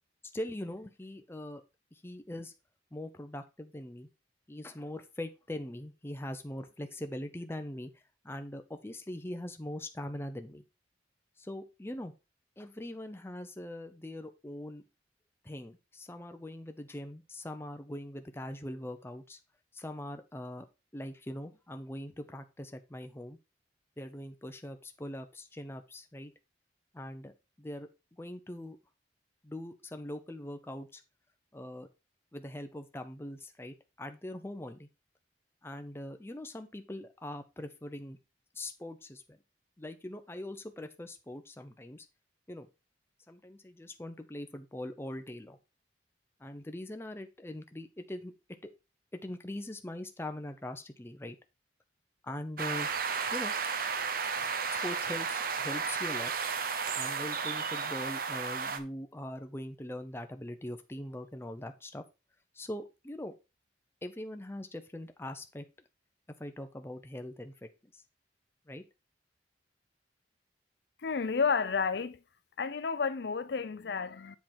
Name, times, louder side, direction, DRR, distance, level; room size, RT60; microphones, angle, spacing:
voice 1, 0.3-1.6 1.9-2.5 2.9-4.1 4.5-10.6 11.4-12.1 12.6-14.8 15.4-19.4 19.7-20.7 20.9-23.4 24.0-26.3 26.9-28.8 29.4-31.0 31.5-31.9 32.3-34.9 35.6-38.2 38.5-39.4 39.8-42.1 42.5-42.7 43.3-45.6 46.4-48.3 48.6-48.7 49.2-51.4 52.2-52.9 53.3-53.5 54.8-56.3 56.9-62.0 62.5-63.3 64.0-65.6 66.4-68.0 68.7-68.8, left 1 dB, 15° left, 0.6 m, -42 dB
sound 1, 52.6-58.8, right 5 dB, 50° right, 0.7 m, -33 dB
voice 2, 71.0-72.2 72.6-74.4, left 5 dB, 60° left, 0.5 m, -31 dB
7.6 x 4.5 x 4.3 m
head